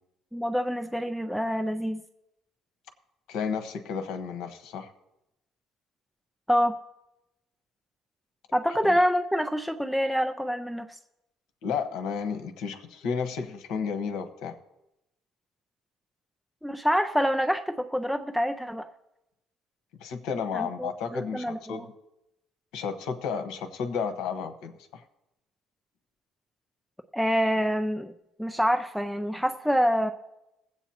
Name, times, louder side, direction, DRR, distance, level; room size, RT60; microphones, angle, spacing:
voice 1, 0.3-2.0 6.5-6.8 8.5-10.9 16.6-18.9 20.5-21.8 27.1-28.1 28.4-30.1, equal, ahead, 7 dB, 0.4 m, -26 dB
voice 2, 3.3-4.9 8.8-8.9 11.6-14.6 20.0-21.8 22.7-25.0, left 6 dB, 80° left, 7 dB, 1.2 m, -32 dB
21.0 x 8.1 x 2.9 m, 0.91 s
cardioid pair, 150°, 0 cm